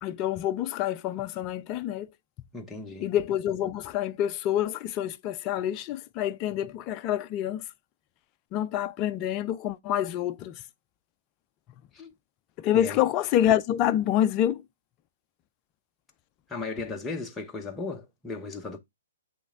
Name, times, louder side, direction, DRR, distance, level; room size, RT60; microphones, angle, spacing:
voice 1, 0.0-2.1 3.0-7.6 8.5-10.6 12.6-14.6, left 11 dB, 25° left, 0.5 m, -27 dB
voice 2, 2.5-3.1 11.9-12.1 12.7-13.0 16.5-18.8, left 3 dB, 10° left, 0.9 m, -36 dB
8.1 x 3.3 x 3.6 m
hypercardioid pair, 145°, 0 cm